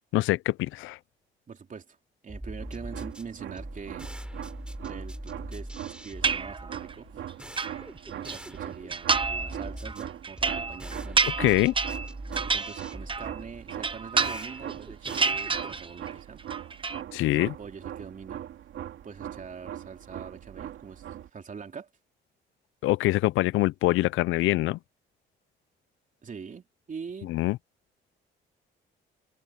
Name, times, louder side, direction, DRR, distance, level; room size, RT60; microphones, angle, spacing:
voice 1, 0.1-1.0 11.4-11.7 17.1-17.5 22.8-24.8 27.3-27.6, left 17 dB, 85° left, 0.4 m, -24 dB
voice 2, 1.5-2.0 2.2-4.1 4.8-7.4 8.1-11.3 12.4-16.4 17.3-18.4 19.0-21.0 21.3-21.9 26.2-27.3, right 6 dB, 40° right, 3.2 m, -43 dB
sound 1, 2.3-15.9, right 1 dB, 5° right, 5.9 m, -42 dB
sound 2, 2.6-21.3, right 11 dB, 75° right, 2.7 m, -41 dB
sound 3, 6.2-6.9 7.3-8.4 8.9-9.5 9.8-13.4 13.7-14.7 15.0-16.1 16.4-17.0, right 4 dB, 25° right, 0.9 m, -29 dB
open air
cardioid pair, 90°, 20 cm